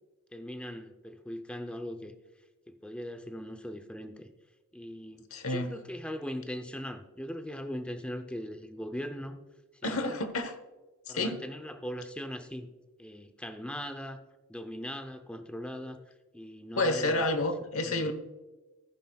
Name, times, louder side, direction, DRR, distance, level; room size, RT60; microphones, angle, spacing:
voice 1, 0.3-2.1 2.7-4.3 4.7-9.4 9.8-10.2 11.1-12.7 13.0-14.2 14.5-16.0 16.3-17.3 17.8-18.1, equal, 5° left, 7 dB, 0.6 m, -40 dB
voice 2, 5.3-5.7 9.8-10.6 11.1-11.4 16.8-18.1, left 2 dB, 70° left, 9 dB, 1.1 m, -29 dB
14.5 x 9.8 x 2.3 m, 1.2 s
head